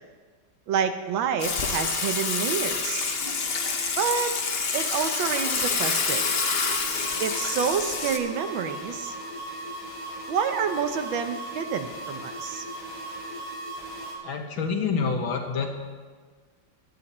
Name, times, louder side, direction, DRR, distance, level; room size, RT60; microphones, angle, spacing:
voice 1, 0.7-3.1 4.0-4.3 4.7-6.2 7.2-9.1 10.3-12.6, right 7 dB, 75° right, 8 dB, 1.5 m, -28 dB
Water / Water tap faucet / Sink (filling or washing), 1.4-8.2, left 4 dB, 40° left, 1.0 m, -27 dB
sound 1, 6.1-14.1, right 1 dB, 10° left, 3.6 m, -37 dB
voice 2, 14.2-15.8, left 5 dB, 80° left, 3 dB, 2.2 m, -27 dB
16.5 x 12.0 x 4.3 m, 1.5 s
omnidirectional pair, 2.2 m